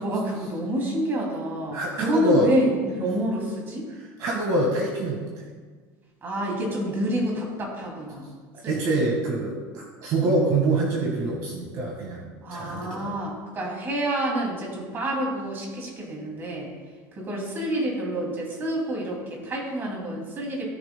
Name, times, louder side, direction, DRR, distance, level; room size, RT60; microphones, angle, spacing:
voice 1, 0.0-3.8 6.2-8.3 8.6-9.0 10.4-10.5 12.4-16.7 17.1-20.7, right 1 dB, 25° right, -1 dB, 2.7 m, -28 dB
voice 2, 1.7-2.5 3.9-5.4 8.6-13.1, right 2 dB, 45° right, -1 dB, 1.7 m, -25 dB
17.5 x 6.9 x 2.3 m, 1.5 s
cardioid pair, 155°, 9 cm